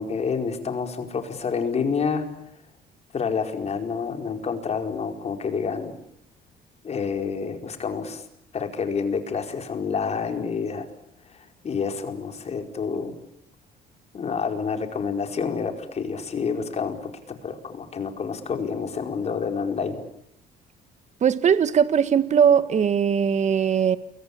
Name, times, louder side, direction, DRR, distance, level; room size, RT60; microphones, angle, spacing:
voice 1, 0.0-2.3 3.1-5.9 6.8-8.2 8.5-10.9 11.6-13.1 14.1-17.0 17.3-20.0, left 5 dB, 40° left, 6 dB, 4.9 m, -28 dB
voice 2, 21.2-24.0, right 7 dB, 45° right, 13 dB, 1.8 m, -20 dB
29.0 x 23.5 x 8.5 m, 0.75 s
cardioid pair, 110°, 17 cm